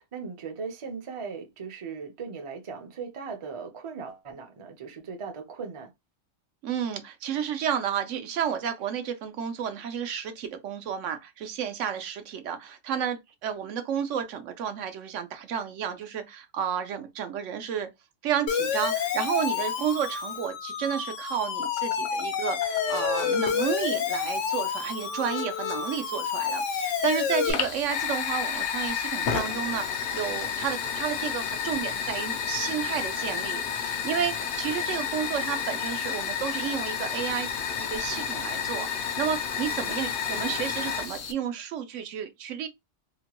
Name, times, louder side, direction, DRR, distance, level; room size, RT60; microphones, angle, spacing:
voice 1, 0.0-5.9, right 5 dB, 35° right, 0.5 m, -38 dB
voice 2, 6.6-17.9 18.2-37.5 37.8-42.7, right 8 dB, 80° right, 0.9 m, -31 dB
Siren, 18.5-27.5, left 7 dB, 80° left, 1.0 m, -29 dB
Fire, 27.4-41.3, left 7 dB, 60° left, 0.6 m, -31 dB
2.9 x 2.2 x 2.8 m
omnidirectional pair, 1.3 m